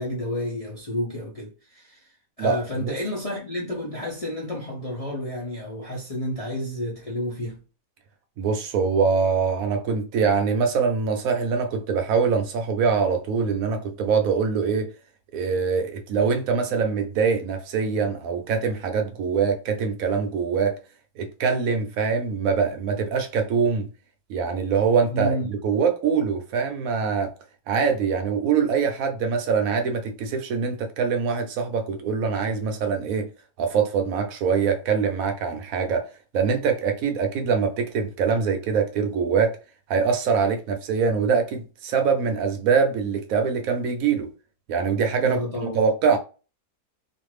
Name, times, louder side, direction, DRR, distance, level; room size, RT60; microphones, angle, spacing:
voice 1, 0.0-7.6 25.1-25.5 45.2-45.8, left 1 dB, 45° left, 0.4 m, -31 dB
voice 2, 2.4-3.0 8.4-14.9 15.3-20.8 21.2-23.9 24.3-27.3 27.7-33.3 33.6-39.6 39.9-44.3 44.7-45.4 45.7-46.2, right 5 dB, 70° right, 1.0 m, -23 dB
2.5 x 2.5 x 3.1 m
omnidirectional pair, 1.6 m